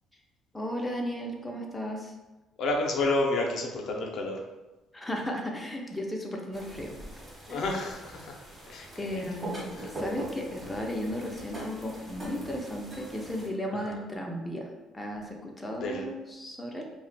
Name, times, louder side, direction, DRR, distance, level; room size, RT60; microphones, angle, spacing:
voice 1, 0.5-2.1 4.9-6.9 7.5-7.6 9.0-14.7 14.9-16.8, equal, 10° left, 0 dB, 0.5 m, -35 dB
voice 2, 2.6-4.4 7.5-8.3 8.7-8.9 15.8-16.0, left 2 dB, 65° left, 1 dB, 0.5 m, -29 dB
sound 1, 6.5-13.5, right 1 dB, 25° right, 1.1 m, -42 dB
2.4 x 2.1 x 3.9 m, 1.1 s
cardioid pair, 95°, 0 cm